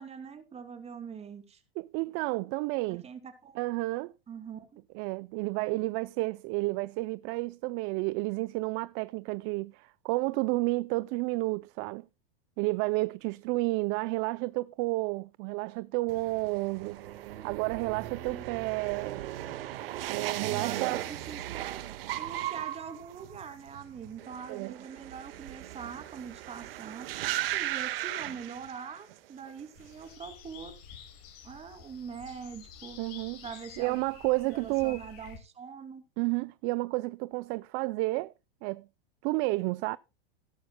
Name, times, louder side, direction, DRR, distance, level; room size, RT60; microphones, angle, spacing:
voice 1, 0.0-1.6 2.9-3.6 4.3-4.8 18.2-18.4 20.4-21.8 22.1-27.1 27.5-30.8 31.4-33.0 33.4-34.0 34.5-36.0, right 6 dB, 20° right, 2.7 m, -43 dB
voice 2, 1.8-3.0 3.6-4.1 4.9-12.0 12.6-19.2 20.1-21.0 24.5-24.7 33.0-33.4 33.8-35.0 36.2-38.3 38.6-38.9 39.2-40.0, right 23 dB, 40° right, 0.5 m, -31 dB
sound 1, 16.1-29.2 29.5-30.0, right 14 dB, 70° right, 1.6 m, -37 dB
sound 2, 29.8-35.4, left 7 dB, 50° left, 6.8 m, -50 dB
17.0 x 11.5 x 2.2 m
hypercardioid pair, 125°, 30 cm